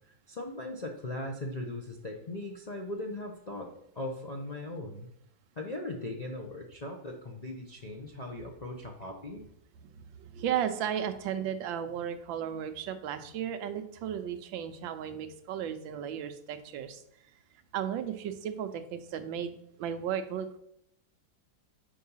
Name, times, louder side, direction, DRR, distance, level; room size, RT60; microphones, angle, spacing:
voice 1, 0.1-3.7 3.9-5.1 5.6-9.4, left 1 dB, 80° left, -1 dB, 0.3 m, -39 dB
voice 2, 9.8-17.0 17.7-20.6, right 9 dB, 80° right, 9 dB, 1.4 m, -35 dB
6.2 x 4.7 x 5.5 m, 0.76 s
omnidirectional pair, 2.1 m